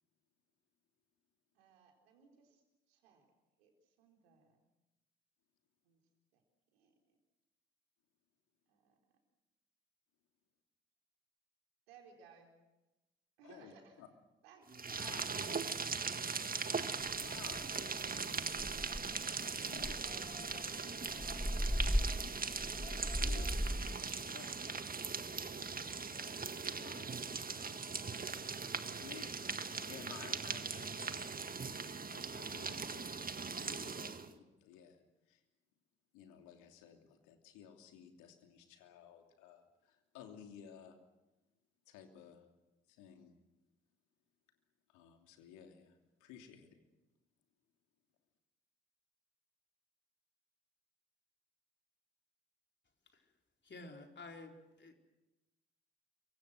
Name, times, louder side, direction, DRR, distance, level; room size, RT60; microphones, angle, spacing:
voice 1, 1.5-2.6 2.9-3.2 3.6-3.7 4.0-4.6 5.8-6.0 6.3-6.4 6.7-6.9 8.7-8.9 11.9-12.5 13.4-14.0 14.4-15.3 15.6-16.0, right 6 dB, 85° right, 2 dB, 4.2 m, -61 dB
voice 2, 13.4-14.1 14.9-15.5 17.2-18.9 19.6-21.7 22.7-23.7 24.0-24.7 25.3-27.1 28.8-31.3 32.0-35.4 36.1-41.0 41.9-42.4 42.9-43.3 44.9-46.8, left 8 dB, 75° left, 4 dB, 3.0 m, -56 dB
sound 1, 14.7-34.3, right 4 dB, 30° right, 1.7 m, -40 dB
sound 2, 17.1-17.2 17.6-17.8 18.2-18.3 18.5-19.2 19.8-24.0, equal, ahead, 1.3 m, -37 dB
voice 3, 53.6-54.9, left 3 dB, 35° left, 3 dB, 4.4 m, -51 dB
28.0 x 24.0 x 6.4 m, 1.0 s
hypercardioid pair, 45°, 30 cm